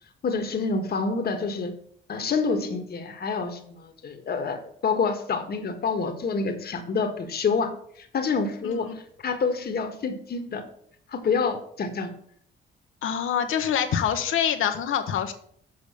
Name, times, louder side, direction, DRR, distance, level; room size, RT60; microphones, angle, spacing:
voice 1, 0.2-1.7 2.1-7.7 8.0-8.9 9.2-10.6 11.1-12.1, left 4 dB, 50° left, 5 dB, 1.5 m, -27 dB
voice 2, 8.6-9.0 13.0-15.3, left 8 dB, 75° left, 7 dB, 1.1 m, -25 dB
6.9 x 5.2 x 6.8 m, 0.63 s
cardioid pair, 85°, 21 cm